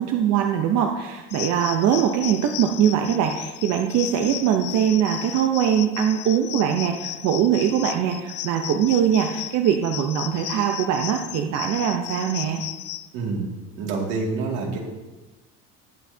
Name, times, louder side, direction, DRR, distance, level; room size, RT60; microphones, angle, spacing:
voice 1, 0.0-12.6, right 9 dB, 60° right, 3 dB, 0.8 m, -22 dB
sound 1, 1.3-13.1, left 13 dB, 50° left, 0.5 m, -35 dB
voice 2, 13.1-13.5 13.8-14.8, right 4 dB, 85° right, -1 dB, 2.4 m, -27 dB
19.5 x 6.5 x 2.8 m, 1.1 s
cardioid pair, 145°, 30 cm